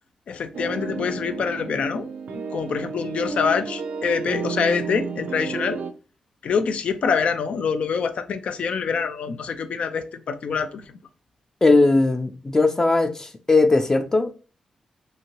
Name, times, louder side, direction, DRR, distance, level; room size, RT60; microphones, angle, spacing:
voice 1, 0.3-2.1 2.5-5.8 6.4-11.0, left 6 dB, 75° left, 0.4 m, -25 dB
sound 1, 0.5-5.9, right 5 dB, 85° right, 0.4 m, -31 dB
voice 2, 11.6-14.3, left 3 dB, 25° left, 0.5 m, -19 dB
2.7 x 2.7 x 2.9 m
cardioid pair, 70°, 2 cm